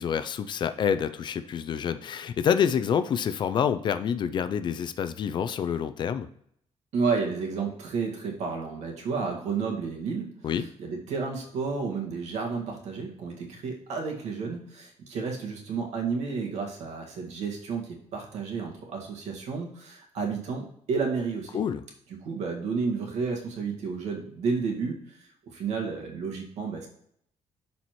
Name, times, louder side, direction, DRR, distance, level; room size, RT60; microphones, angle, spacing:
voice 1, 0.0-6.3 10.4-10.6 21.5-21.8, left 8 dB, 40° left, 11 dB, 0.4 m, -27 dB
voice 2, 6.9-10.3 10.8-21.6 22.2-25.2 25.5-26.9, right 5 dB, 75° right, 1 dB, 1.8 m, -31 dB
11.5 x 4.2 x 3.0 m, 0.69 s
cardioid pair, 170°, 12 cm